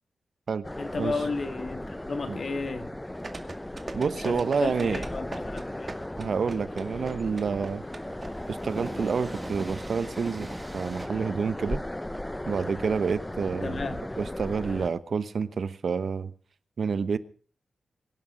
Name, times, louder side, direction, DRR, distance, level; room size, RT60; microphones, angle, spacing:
sound 1, 0.6-14.9, left 1 dB, 10° left, 0.7 m, -37 dB
voice 1, 0.8-2.9 4.2-5.9 13.6-14.0, left 3 dB, 50° left, 2.2 m, -33 dB
Train, 2.0-11.1, right 1 dB, 15° right, 2.2 m, -44 dB
sound 2, 3.2-8.3 8.5-8.6, right 3 dB, 35° right, 2.3 m, -38 dB
voice 2, 3.9-5.0 6.2-7.8 8.5-11.8 12.5-16.3 16.8-17.2, right 5 dB, 65° right, 1.0 m, -29 dB
23.0 x 11.5 x 5.0 m
wide cardioid pair, 120°, 0 cm